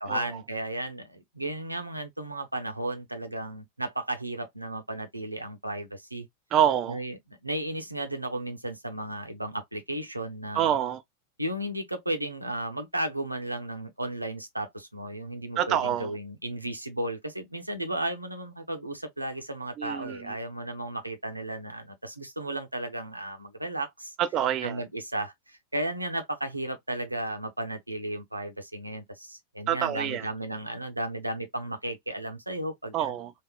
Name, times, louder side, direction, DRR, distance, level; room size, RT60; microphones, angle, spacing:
voice 1, 0.0-6.3 6.9-10.7 11.4-24.1 24.6-33.0, right 1 dB, 85° right, 0.7 m, -34 dB
voice 2, 6.5-7.0 10.5-11.0 15.6-16.1 19.8-20.3 24.2-24.8 29.7-30.3 32.9-33.3, right 10 dB, 35° right, 0.4 m, -26 dB
3.4 x 2.4 x 2.2 m
figure-of-eight pair, 90°, 0 cm